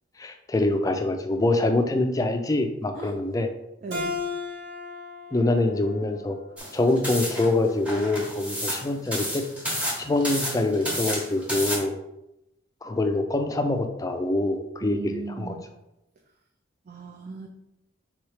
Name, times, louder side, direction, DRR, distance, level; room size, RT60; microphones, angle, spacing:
voice 1, 0.2-3.5 5.3-6.4 6.7-9.5 10.0-11.9 12.8-15.5, left 2 dB, 20° left, 5 dB, 0.4 m, -25 dB
voice 2, 3.8-4.2 14.8-15.6 16.9-17.5, right 3 dB, 45° right, 1 dB, 0.4 m, -37 dB
Keyboard (musical), 3.9-7.1, left 4 dB, 75° right, 1.1 m, -36 dB
sound 1, 6.6-11.8, equal, 5° right, 0.9 m, -31 dB
3.6 x 3.1 x 4.7 m, 0.87 s
head